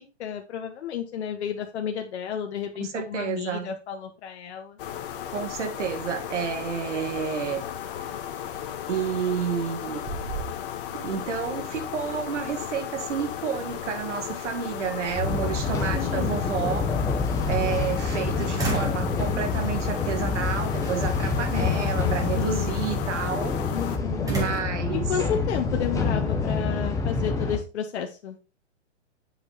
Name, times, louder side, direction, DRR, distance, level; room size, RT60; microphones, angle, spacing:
voice 1, 0.0-4.8 15.9-16.4 21.5-22.7 23.7-24.3 24.9-28.4, left 8 dB, 65° left, 1.2 m, -32 dB
voice 2, 2.8-3.7 5.3-7.7 8.9-10.0 10.9-17.1 17.5-23.6 24.3-25.1, right 7 dB, 75° right, 1.7 m, -30 dB
sound 1, 4.8-24.0, left 10 dB, 50° left, 1.3 m, -35 dB
sound 2, 9.4-9.7 10.0-11.0 11.4-11.5 14.2-14.3 14.9-15.8 17.1-18.2 18.6-19.1 19.6-20.0 20.8-21.3 24.3-26.1, right 1 dB, 10° right, 2.1 m, -33 dB
sound 3, 15.2-27.6, left 4 dB, 10° left, 0.8 m, -27 dB
8.0 x 5.1 x 4.1 m
hypercardioid pair, 145°, 36 cm